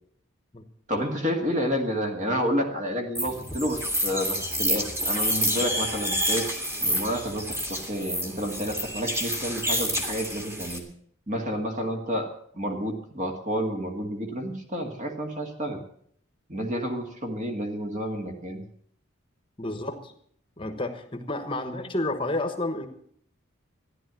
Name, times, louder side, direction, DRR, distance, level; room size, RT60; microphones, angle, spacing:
voice 1, 0.9-6.5 6.8-10.8 11.3-12.3 12.5-15.8 16.5-18.6, equal, 35° right, 3 dB, 2.1 m, -30 dB
sound 1, 3.1-10.8, equal, 10° right, 1.9 m, -28 dB
voice 2, 19.6-20.1 20.6-22.9, left 2 dB, 25° left, 7 dB, 1.2 m, -30 dB
14.5 x 11.0 x 7.6 m, 0.63 s
head